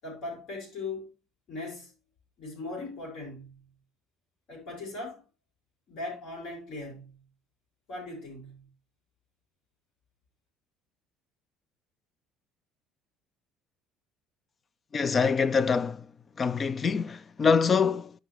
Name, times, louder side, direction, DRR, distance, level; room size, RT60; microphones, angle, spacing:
voice 1, 0.0-1.1 1.5-1.9 2.4-3.6 4.5-5.2 5.9-7.1 7.9-8.7, left 2 dB, 65° left, 5.8 m, -39 dB
voice 2, 14.9-16.1 16.4-18.1, left 5 dB, 30° left, 0.4 m, -25 dB
12.5 x 5.2 x 3.0 m
cardioid pair, 125°, 0 cm